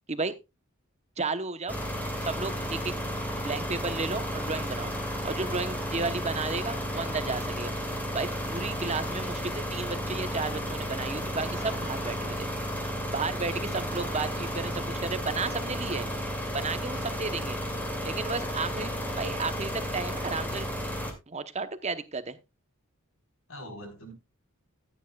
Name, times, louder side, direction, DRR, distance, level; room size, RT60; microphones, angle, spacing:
voice 1, 1.2-1.8 2.3-3.1 3.4-4.9 5.2-7.7 8.1-12.5 13.1-16.1 16.5-17.6 18.0-18.9 19.2-20.7 21.3-22.4, right 4 dB, 30° right, 11 dB, 0.9 m, -33 dB
sound 1, 1.7-21.1, equal, 10° left, 2.5 m, -33 dB
voice 2, 8.8-9.2 13.5-13.9 14.6-15.0 18.7-18.9 23.5-24.1, equal, 70° left, 5 dB, 4.5 m, -46 dB
14.5 x 10.0 x 2.4 m, 0.24 s
head